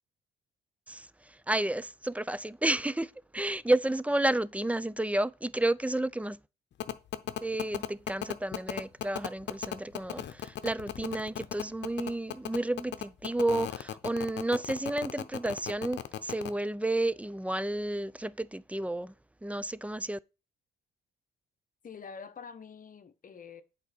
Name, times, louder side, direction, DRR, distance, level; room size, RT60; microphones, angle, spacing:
voice 1, 1.5-6.4 7.4-19.1 19.4-20.2, right 1 dB, 5° right, 0.4 m, -31 dB
sound 1, 6.8-16.5, left 11 dB, 65° left, 0.9 m, -35 dB
voice 2, 21.8-23.6, left 6 dB, 45° left, 1.2 m, -46 dB
8.3 x 4.4 x 6.8 m
cardioid pair, 90°, 20 cm